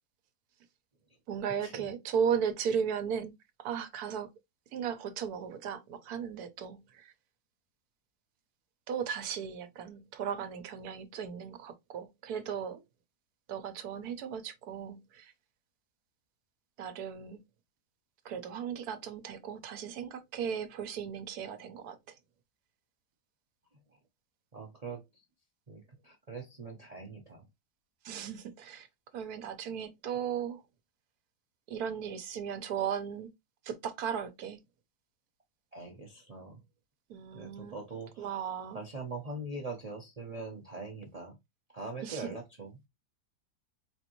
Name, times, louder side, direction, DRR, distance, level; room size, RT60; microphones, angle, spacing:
voice 1, 1.3-3.3 3.6-4.3 4.7-7.1 8.9-12.8 13.5-15.3 16.8-17.4 18.2-21.9 28.0-28.9 29.1-30.6 31.7-33.3 33.7-34.6 37.1-37.8 38.2-38.8 42.0-42.4, right 7 dB, 70° right, 1.1 m, -36 dB
voice 2, 24.5-25.0 25.7-27.4 35.7-36.6 37.3-38.3 38.7-41.4 41.7-42.8, right 3 dB, 55° right, 0.4 m, -42 dB
4.3 x 2.5 x 2.9 m
omnidirectional pair, 1.7 m